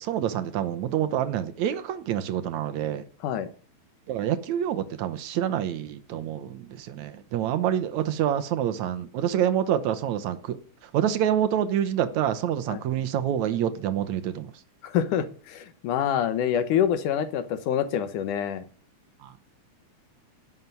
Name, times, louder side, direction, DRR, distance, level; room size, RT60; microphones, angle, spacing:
voice 1, 0.0-3.1 4.1-10.6 10.8-14.5 19.2-19.3, right 10 dB, 70° right, 2.2 m, -27 dB
voice 2, 14.8-18.6, left 9 dB, 80° left, 2.7 m, -26 dB
11.5 x 7.5 x 9.5 m
omnidirectional pair, 3.5 m